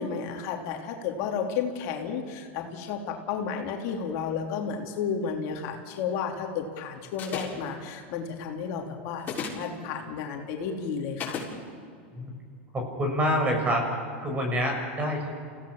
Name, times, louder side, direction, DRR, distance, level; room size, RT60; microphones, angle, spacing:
voice 1, 0.0-11.4, left 6 dB, 55° left, 2 dB, 3.0 m, -32 dB
sound 1, 7.2-7.7 9.2-9.7 11.2-11.5, left 6 dB, 30° left, 7.3 m, -33 dB
voice 2, 12.7-13.9 14.2-15.3, equal, 20° right, 2 dB, 6.4 m, -27 dB
29.0 x 17.0 x 7.3 m, 2.3 s
hypercardioid pair, 120°, 6 cm